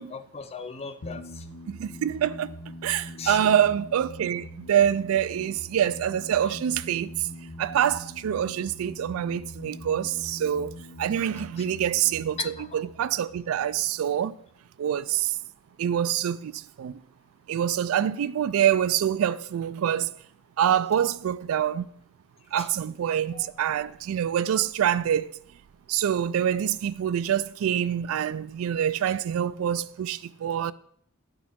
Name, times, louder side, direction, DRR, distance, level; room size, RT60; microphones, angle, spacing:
voice 1, 0.0-1.4 3.1-3.4 11.6-11.7 12.4-12.8 22.6-22.7 23.3-23.5, left 5 dB, 30° left, 0.4 m, -38 dB
sound 1, 1.0-14.2, equal, 75° left, 0.8 m, -43 dB
voice 2, 1.7-2.6 2.8-7.3 7.6-10.7 11.0-14.4 14.8-15.4 15.8-17.0 17.5-20.1 20.6-21.9 22.5-25.3 25.9-30.7, right 9 dB, 90° right, 0.3 m, -26 dB
10.0 x 4.9 x 3.6 m
head